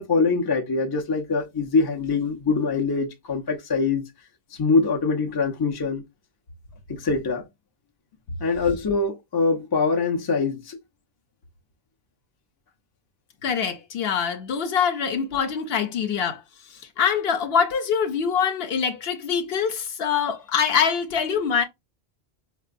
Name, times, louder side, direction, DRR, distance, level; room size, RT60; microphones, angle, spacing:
voice 1, 0.0-4.1 4.6-6.0 6.9-7.5 8.4-10.8, left 4 dB, 35° left, 0.3 m, -23 dB
voice 2, 13.4-16.4 17.0-21.6, left 7 dB, 70° left, 0.8 m, -24 dB
4.4 x 2.2 x 2.4 m
omnidirectional pair, 1.1 m